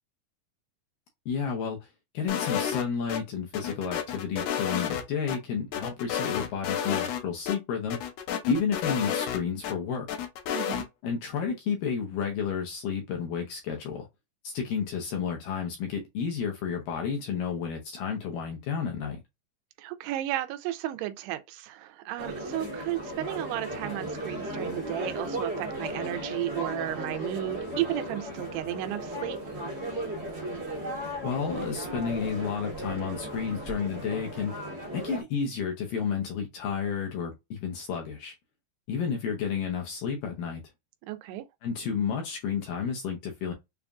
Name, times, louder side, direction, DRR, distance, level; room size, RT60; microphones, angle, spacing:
voice 1, 1.3-1.8 2.1-8.0 8.5-10.1 11.0-14.1 14.4-19.2 31.2-34.5 34.9-38.3 38.9-40.6 41.6-43.5, left 6 dB, 75° left, 2.2 m, -31 dB
sound 1, 2.3-3.2 3.5-5.4 5.7-7.2 7.5-7.6 7.9-9.7 10.1-10.8, left 9 dB, 90° left, 1.8 m, -31 dB
voice 2, 10.5-10.9 19.8-29.4 41.1-41.5, right 13 dB, 85° right, 2.6 m, -33 dB
sound 2, 22.2-35.2, right 1 dB, 60° right, 1.0 m, -36 dB
6.8 x 2.3 x 2.4 m
omnidirectional pair, 4.7 m